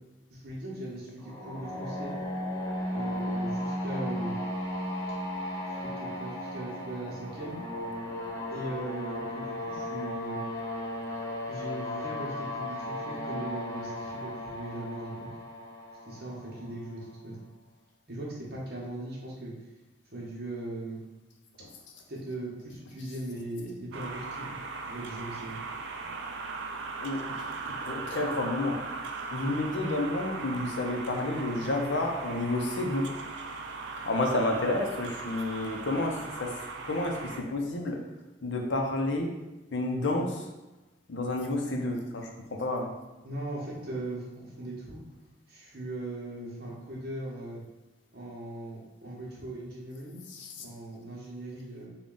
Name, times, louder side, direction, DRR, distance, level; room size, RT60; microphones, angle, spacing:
voice 1, 0.3-2.1 2.9-4.4 5.7-7.6 8.5-10.4 11.5-15.3 16.0-17.4 18.1-19.5 20.1-21.0 22.1-24.6 24.8-25.6 43.2-45.0 45.5-47.6 48.1-50.2 50.6-51.9, right 1 dB, 50° right, -4 dB, 0.9 m, -39 dB
sound 1, 1.2-17.0, left 1 dB, 15° left, 0.5 m, -35 dB
sound 2, 23.9-37.4, right 3 dB, 70° right, 0.4 m, -38 dB
voice 2, 27.0-28.8 29.3-33.1 34.0-38.0 38.4-39.3 39.7-40.5 41.1-42.9 50.3-50.6, left 2 dB, 70° left, 1 dB, 0.6 m, -30 dB
3.6 x 2.3 x 3.8 m, 1.1 s
head